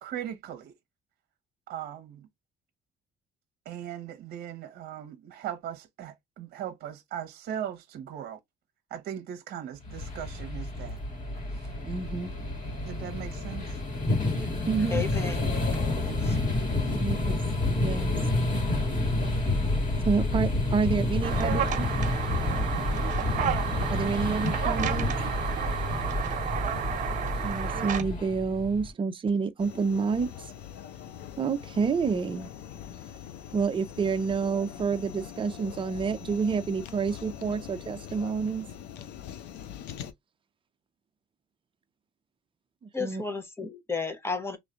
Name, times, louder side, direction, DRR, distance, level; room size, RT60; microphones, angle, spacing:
voice 1, 0.0-0.7 1.7-2.3 3.6-8.4 8.9-11.0 12.8-13.7 15.7-17.0, right 10 dB, 65° right, 0.9 m, -39 dB
sound 1, 9.8-28.9, left 2 dB, 50° left, 2.3 m, -29 dB
voice 2, 11.8-12.3 14.6-15.0 16.9-17.4 17.8-18.1 20.0-21.6 23.9-25.1 27.4-30.3 31.4-32.5 33.5-38.7 42.8-43.2, right 5 dB, 30° right, 0.6 m, -28 dB
voice 3, 14.9-15.6 16.2-16.3 42.9-44.6, left 4 dB, 15° left, 1.0 m, -33 dB
sound 2, 21.2-28.0, right 9 dB, 50° right, 1.2 m, -31 dB
sound 3, 29.6-40.1, left 10 dB, 85° left, 0.6 m, -43 dB
3.4 x 3.2 x 2.5 m
cardioid pair, 110°, 17 cm